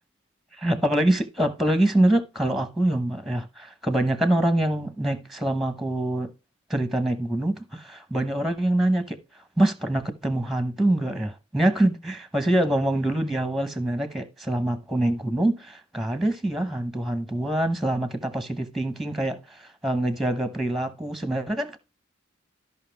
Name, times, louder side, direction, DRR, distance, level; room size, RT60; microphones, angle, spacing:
voice 1, 0.6-6.3 6.7-9.2 9.6-21.8, right 1 dB, ahead, 0.9 m, -25 dB
13.0 x 5.6 x 3.4 m
head